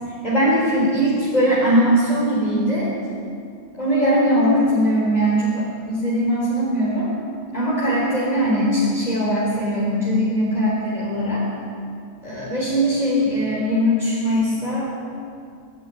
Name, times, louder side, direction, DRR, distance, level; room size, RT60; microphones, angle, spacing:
voice 1, 0.2-2.9 3.8-7.1 7.5-11.4 12.2-14.9, equal, 30° left, -7 dB, 4.2 m, -20 dB
22.0 x 12.5 x 9.9 m, 2.4 s
omnidirectional pair, 1.4 m